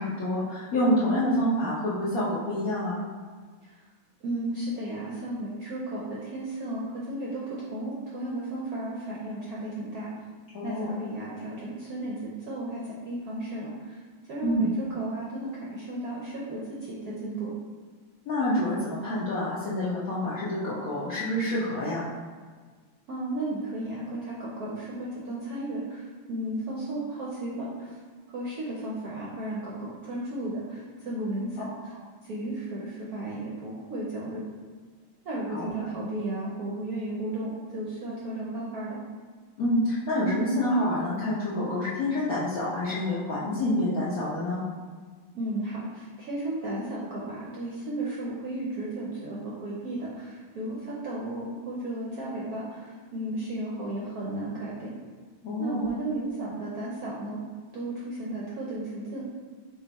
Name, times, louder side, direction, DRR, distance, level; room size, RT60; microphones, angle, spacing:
voice 1, 0.0-3.0 10.5-10.9 14.4-14.7 18.3-22.1 31.6-31.8 35.5-35.7 39.6-44.6 55.4-55.9, left 1 dB, 60° left, -9 dB, 0.9 m, -27 dB
voice 2, 4.2-10.1 10.6-14.0 14.3-17.5 23.1-28.0 28.3-31.9 32.2-34.4 35.2-39.0 45.3-54.9 55.6-57.4 57.7-59.3, right 1 dB, 65° right, -6 dB, 0.9 m, -34 dB
5.2 x 2.4 x 4.0 m, 1.5 s
omnidirectional pair, 2.3 m